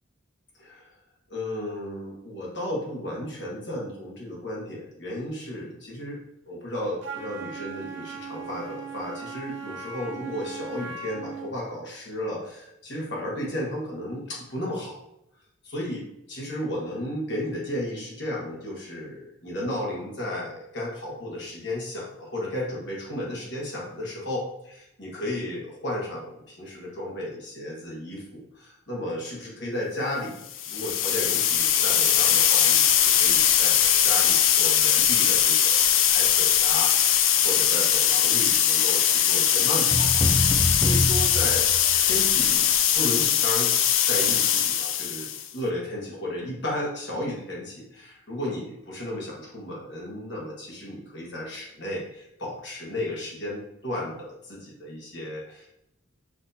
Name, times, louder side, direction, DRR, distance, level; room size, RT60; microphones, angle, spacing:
voice 1, 1.3-15.0 15.6-41.7 42.0-42.7 42.9-43.7 44.0-55.8, left 1 dB, 60° left, -3 dB, 1.5 m, -34 dB
Wind instrument woodwind instrument, 7.0-11.5, right 5 dB, 65° right, 0.7 m, -38 dB
sound 1, 30.5-45.5, left 9 dB, 80° left, 0.4 m, -21 dB
sound 2, 39.9-42.2, left 1 dB, 10° left, 0.4 m, -26 dB
6.0 x 2.9 x 2.7 m, 0.82 s
head